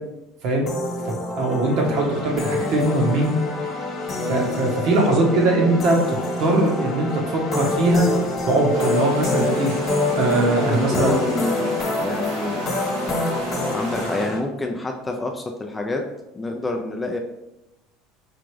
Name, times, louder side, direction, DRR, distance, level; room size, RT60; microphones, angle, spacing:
sound 1, 0.7-14.4, left 2 dB, 35° left, 1.3 m, -26 dB
voice 1, 1.0-3.3 4.3-8.2 8.4-9.7 10.2-11.1, right 2 dB, 55° right, -1 dB, 1.1 m, -21 dB
sound 2, 8.7-14.3, right 1 dB, 85° right, 1.0 m, -34 dB
voice 2, 10.2-12.6 13.7-16.0 16.4-17.2, left 2 dB, 15° left, 3 dB, 0.4 m, -28 dB
4.9 x 2.4 x 3.1 m, 0.93 s
supercardioid pair, 125°, 0 cm